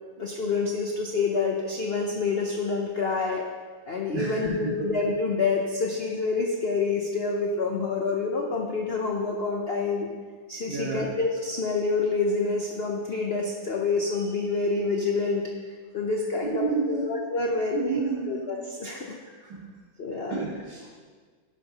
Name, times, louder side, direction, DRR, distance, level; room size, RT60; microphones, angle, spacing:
voice 1, 0.2-3.4 3.9-10.1 10.5-15.4 15.9-19.2 20.0-20.5, left 4 dB, 80° left, 1 dB, 0.5 m, -27 dB
voice 2, 4.1-4.9 10.7-11.1 16.4-17.1 17.7-18.4 19.5-19.6 20.3-20.9, right 4 dB, 70° right, -7 dB, 2.3 m, -30 dB
11.0 x 9.8 x 2.9 m, 1.5 s
omnidirectional pair, 2.2 m